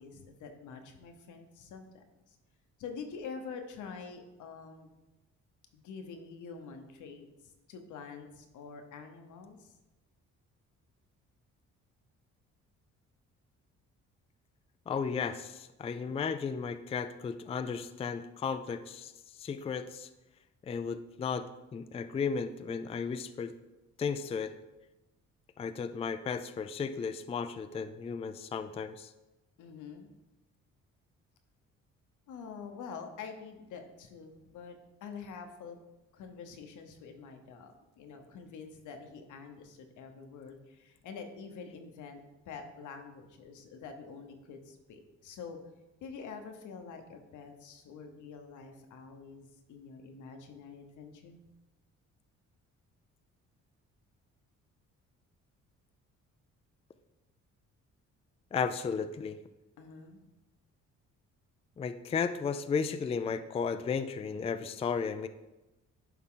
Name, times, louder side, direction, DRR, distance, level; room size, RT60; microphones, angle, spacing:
voice 1, 0.0-2.4 2.8-4.9 5.7-9.7 29.6-30.1 32.3-35.8 36.1-45.6 46.0-51.4 59.8-60.2, left 5 dB, 80° left, 5 dB, 1.0 m, -46 dB
voice 2, 14.9-20.1 20.6-23.5 24.0-24.5 25.6-29.1 58.5-59.4 61.8-65.3, left 6 dB, 20° left, 10 dB, 0.3 m, -34 dB
10.5 x 3.7 x 3.8 m, 1.0 s
cardioid pair, 90°, 30 cm